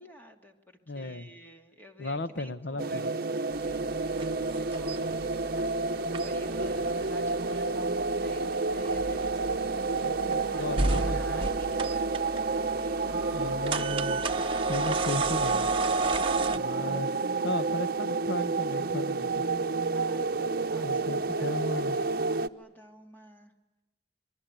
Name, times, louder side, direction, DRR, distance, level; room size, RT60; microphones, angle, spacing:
voice 1, 0.0-9.5 10.4-13.5 19.9-21.6 21.9-22.1 22.4-23.5, equal, 10° left, 3 dB, 2.7 m, -52 dB
voice 2, 0.9-1.3 2.0-3.1 9.9-11.5 13.3-14.2 14.7-15.7 16.5-17.1 17.4-19.5 20.8-22.0, left 2 dB, 75° left, 12 dB, 1.1 m, -35 dB
sound 1, 2.8-22.5, right 3 dB, 60° right, 0.9 m, -30 dB
sound 2, 3.5-16.6, right 3 dB, 30° right, 1.4 m, -34 dB
27.5 x 22.5 x 9.2 m, 1.1 s
head